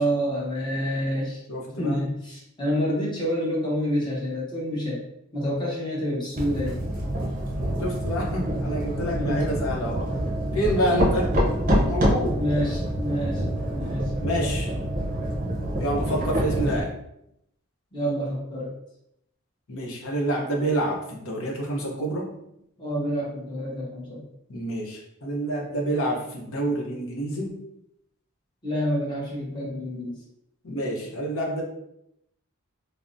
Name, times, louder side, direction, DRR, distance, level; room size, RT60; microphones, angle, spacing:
voice 1, 0.0-1.4 1.8-5.0 5.3-6.8 9.1-9.5 12.4-13.4 13.7-14.1 17.9-18.7 22.8-24.2 28.6-30.1, equal, 20° left, -5 dB, 0.8 m, -28 dB
voice 2, 1.5-2.0 7.8-10.1 10.5-11.3 11.8-12.4 14.2-14.7 15.8-16.9 19.7-22.3 24.5-27.6 30.6-31.6, right 1 dB, 70° left, -1 dB, 0.7 m, -28 dB
sound 1, 6.3-16.8, equal, 35° right, 0.6 m, -26 dB
3.4 x 2.0 x 2.6 m, 0.79 s
head